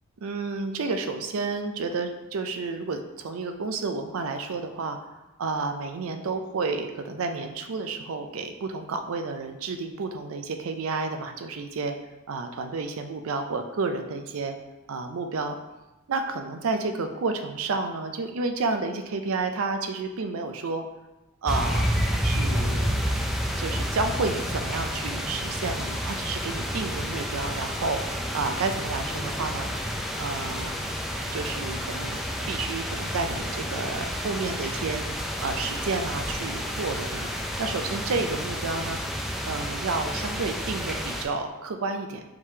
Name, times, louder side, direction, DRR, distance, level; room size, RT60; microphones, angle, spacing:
voice 1, 0.2-5.0 5.4-12.0 12.3-14.6 14.9-15.6 16.1-20.8 21.4-23.0 23.6-28.0 28.3-29.7 30.2-30.7 31.3-35.0 35.4-37.3 37.6-39.0 39.4-42.2, right 3 dB, 70° right, 6 dB, 0.5 m, -31 dB
sound 1, 21.5-41.2, equal, ahead, 0.3 m, -30 dB
4.7 x 3.7 x 2.7 m, 1.0 s
head